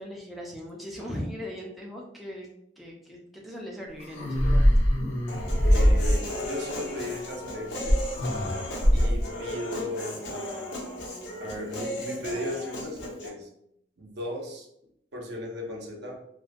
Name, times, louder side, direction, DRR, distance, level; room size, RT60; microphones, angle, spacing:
voice 1, 0.0-2.5 2.8-4.7 5.3-5.7 8.8-9.0, equal, ahead, -3 dB, 0.3 m, -39 dB
sound 1, 4.0-6.5 7.9-9.3, equal, 40° left, 0.6 m, -22 dB
Human voice, 5.3-13.3, left 1 dB, 75° left, 0.6 m, -36 dB
voice 2, 5.7-8.0 8.9-10.6 11.4-13.5 14.0-14.7 15.1-16.2, left 1 dB, 65° right, 0 dB, 0.5 m, -36 dB
2.3 x 2.1 x 2.5 m, 0.74 s
head